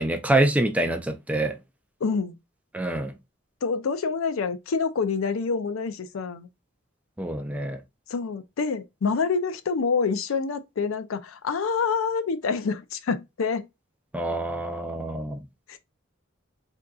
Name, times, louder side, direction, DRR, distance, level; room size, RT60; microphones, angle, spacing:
voice 1, 0.0-1.6 2.7-3.1 7.2-7.8 14.1-15.4, right 1 dB, 5° right, 0.4 m, -26 dB
voice 2, 2.0-2.3 3.6-6.5 8.1-13.7 15.7-15.8, left 5 dB, 85° left, 0.4 m, -27 dB
3.6 x 2.6 x 2.3 m
head